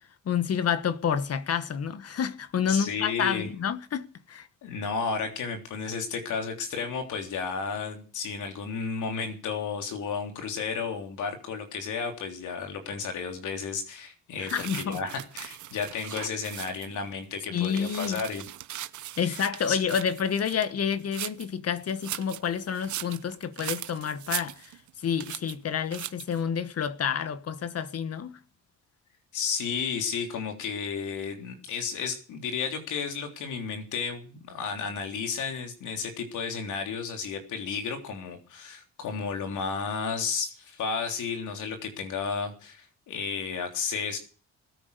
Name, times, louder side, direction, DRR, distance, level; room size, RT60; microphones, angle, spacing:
voice 1, 0.2-4.5 14.4-15.0 17.5-18.2 19.2-24.7 25.0-28.4, left 7 dB, 55° left, 1.5 m, -29 dB
voice 2, 2.7-3.5 4.6-18.5 19.2-19.8 29.3-44.2, left 5 dB, 80° left, 3.5 m, -33 dB
sound 1, 14.5-17.0 17.4-21.5 21.9-24.9 25.2-25.6 25.9-26.4, right 13 dB, 75° right, 1.0 m, -39 dB
20.0 x 9.4 x 6.9 m
cardioid pair, 90°, 30 cm